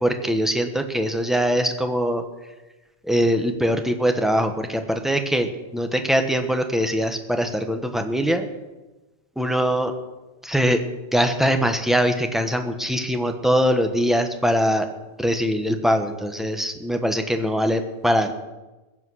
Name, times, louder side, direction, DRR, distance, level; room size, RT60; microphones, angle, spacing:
voice 1, 0.0-2.2 3.0-8.5 9.4-9.9 10.4-10.8 11.1-14.9 15.2-18.3, equal, ahead, 5 dB, 1.2 m, -22 dB
21.0 x 7.7 x 6.4 m, 1.1 s
omnidirectional pair, 1.1 m